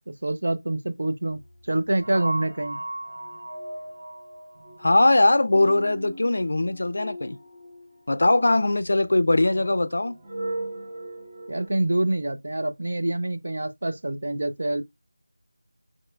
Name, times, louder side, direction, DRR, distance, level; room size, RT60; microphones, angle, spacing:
voice 1, 0.2-2.8 11.5-14.8, right 1 dB, 60° right, 0.6 m, -26 dB
sound 1, 1.2-11.7, right 1 dB, 35° right, 1.4 m, -38 dB
voice 2, 4.8-7.4 8.1-10.2, left 2 dB, 60° left, 0.4 m, -21 dB
6.1 x 3.0 x 2.3 m
figure-of-eight pair, 170°, 0 cm